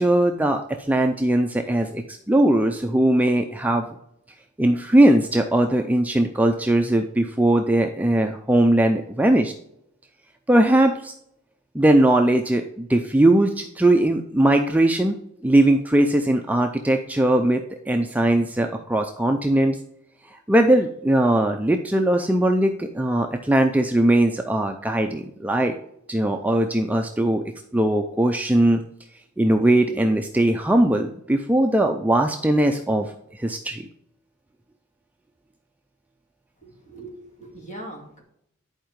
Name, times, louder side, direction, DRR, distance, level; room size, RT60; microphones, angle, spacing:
voice 1, 0.0-3.9 4.6-9.5 10.5-11.1 11.7-15.2 15.4-19.8 20.3-25.8 26.1-27.4 27.7-28.8 29.4-33.9, right 1 dB, 10° right, 4 dB, 0.4 m, -20 dB
voice 2, 36.6-38.2, right 1 dB, 35° left, 0 dB, 2.4 m, -40 dB
10.5 x 4.7 x 5.1 m, 0.73 s
head